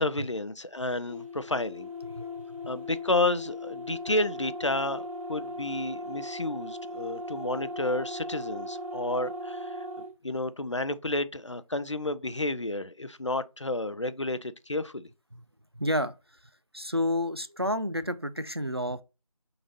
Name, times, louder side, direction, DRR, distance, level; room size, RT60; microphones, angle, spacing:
voice 1, 0.0-1.9 2.7-9.7 10.2-15.1, left 2 dB, 55° left, 0.5 m, -31 dB
sound 1, 1.1-10.1, left 1 dB, 65° right, 1.1 m, -38 dB
voice 2, 15.8-16.1 16.7-19.0, left 1 dB, 45° right, 0.4 m, -29 dB
5.2 x 3.9 x 2.6 m
figure-of-eight pair, 175°, 19 cm